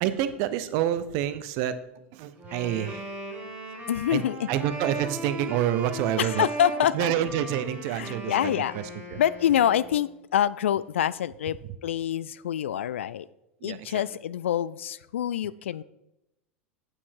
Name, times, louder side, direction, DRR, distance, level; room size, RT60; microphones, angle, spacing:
voice 1, 0.0-1.7 2.1-3.1 4.1-4.2 4.5-6.5 6.9-8.8 9.1-9.2 13.6-14.0, right 11 dB, 50° right, 12 dB, 0.7 m, -28 dB
Wind instrument woodwind instrument, 2.4-10.1, right 1 dB, 20° right, 3.7 m, -38 dB
voice 2, 3.9-4.5 6.2-7.1 7.9-8.7 9.2-11.6 11.8-13.3 13.6-15.8, left 10 dB, 65° left, 18 dB, 0.3 m, -26 dB
8.7 x 7.1 x 4.6 m, 0.87 s
figure-of-eight pair, 85°, 7 cm